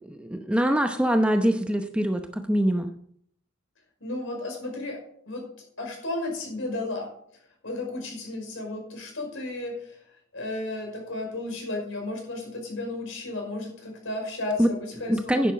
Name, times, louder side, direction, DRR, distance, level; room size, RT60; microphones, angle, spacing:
voice 1, 0.0-2.9 14.6-14.7 15.1-15.5, equal, 5° right, 6 dB, 0.8 m, -24 dB
voice 2, 4.0-5.0 5.3-5.4 5.8-7.1 7.6-10.0 10.3-15.4, left 2 dB, 65° left, 2 dB, 5.7 m, -33 dB
11.0 x 10.0 x 5.9 m, 0.65 s
head